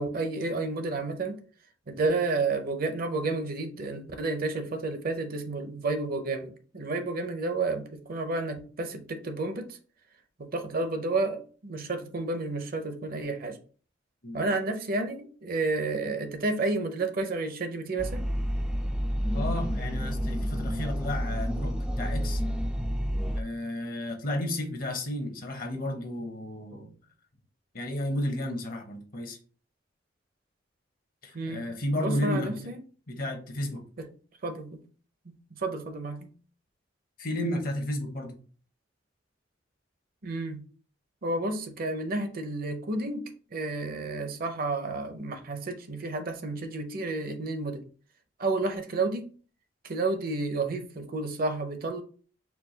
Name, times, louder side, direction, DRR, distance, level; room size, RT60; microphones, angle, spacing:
voice 1, 0.0-1.4 1.9-9.8 10.4-13.6 14.3-18.2 31.3-31.6 31.9-32.8 34.0-34.1 34.4-34.8 35.3-36.3 40.2-40.6 41.2-47.8 48.4-49.3 49.8-52.0, right 3 dB, 50° right, 0.6 m, -31 dB
sound 1, 18.0-23.4, equal, 5° right, 0.3 m, -29 dB
voice 2, 19.3-22.4 23.3-26.9 27.7-29.4 31.2-32.6 33.1-33.8 37.2-38.4, left 1 dB, 50° left, 0.9 m, -32 dB
4.5 x 2.3 x 3.9 m
head